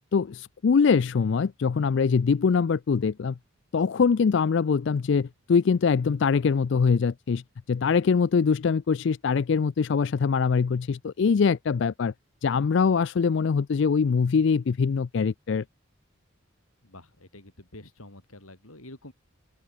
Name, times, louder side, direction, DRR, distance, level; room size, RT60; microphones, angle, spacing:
voice 1, 0.1-3.4 3.7-7.4 7.7-12.1 12.4-15.6, left 5 dB, 55° left, 0.4 m, -23 dB
voice 2, 16.8-19.1, left 1 dB, 85° left, 7.5 m, -47 dB
open air
head